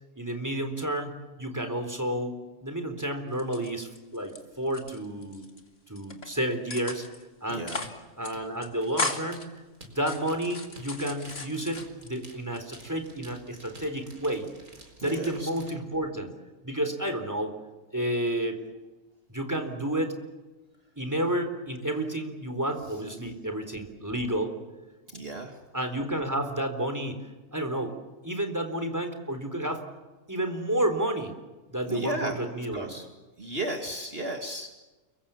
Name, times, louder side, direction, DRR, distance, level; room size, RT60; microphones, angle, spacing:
voice 1, 0.2-5.4 5.9-7.0 7.4-7.7 8.2-9.5 9.9-14.5 15.0-16.3 16.6-17.5 17.9-18.6 19.3-20.2 21.0-24.5 25.7-27.2 27.5-27.9 28.2-29.8 30.3-31.3 31.7-33.0, right 1 dB, 10° right, 6 dB, 3.9 m, -31 dB
sound 1, 3.3-4.4 4.7-5.6 6.0-6.3 6.7-7.2 7.5-8.0 8.2-8.3 8.6-9.5 9.9-12.1 12.6-13.2, left 3 dB, 45° left, 2.7 m, -36 dB
voice 2, 7.5-7.8 15.0-15.5 25.1-25.6 31.9-32.4 32.7-33.1 33.4-34.8, right 1 dB, 40° right, 3 dB, 2.5 m, -34 dB
sound 2, 7.8-15.8, right 1 dB, 80° right, 4.9 m, -51 dB
29.5 x 23.5 x 7.2 m, 1.2 s
omnidirectional pair, 1.5 m